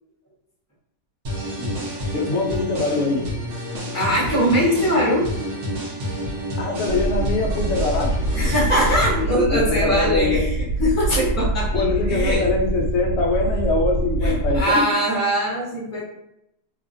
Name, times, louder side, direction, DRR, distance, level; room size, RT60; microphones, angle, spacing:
sound 1, 1.2-9.2, equal, 60° right, 0.9 m, -29 dB
voice 1, 1.6-3.3 6.6-8.2 9.2-10.5 11.7-14.9, left 3 dB, 65° left, 0 dB, 0.7 m, -23 dB
voice 2, 3.9-5.3 8.3-10.5 10.8-12.4 14.2-16.0, equal, 15° left, -7 dB, 0.7 m, -21 dB
sound 2, 6.9-14.6, right 1 dB, 90° left, 1.2 m, -25 dB
2.7 x 2.4 x 2.5 m, 0.80 s
omnidirectional pair, 1.8 m